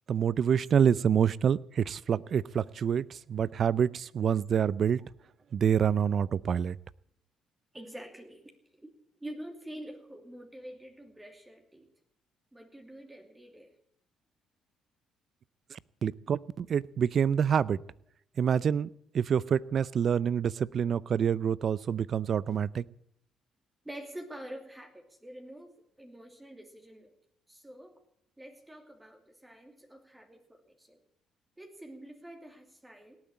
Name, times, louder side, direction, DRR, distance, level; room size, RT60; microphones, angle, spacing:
voice 1, 0.1-3.0 3.3-5.0 5.5-6.8 16.0-17.8 18.4-18.9 19.1-22.8, right 8 dB, 55° right, 21 dB, 0.5 m, -27 dB
voice 2, 7.7-8.9 9.2-11.9 12.5-13.7 20.6-20.7 23.8-27.1 27.5-28.0 28.4-31.0 31.6-33.2, right 1 dB, 15° right, 4 dB, 2.8 m, -47 dB
18.0 x 9.0 x 8.6 m, 0.70 s
supercardioid pair, 70°, 0 cm